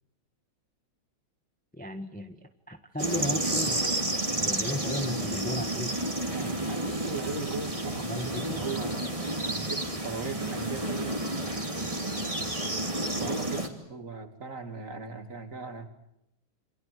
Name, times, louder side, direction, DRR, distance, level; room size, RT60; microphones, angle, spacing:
voice 1, 1.7-3.8 4.4-6.1 8.1-8.7, left 1 dB, 5° left, 7 dB, 1.2 m, -35 dB
sound 1, 3.0-13.7, right 1 dB, 15° right, 2.9 m, -31 dB
voice 2, 6.3-9.1 9.5-11.2 13.2-15.9, right 4 dB, 40° right, 7 dB, 2.9 m, -38 dB
28.0 x 25.5 x 7.8 m, 0.80 s
omnidirectional pair, 2.3 m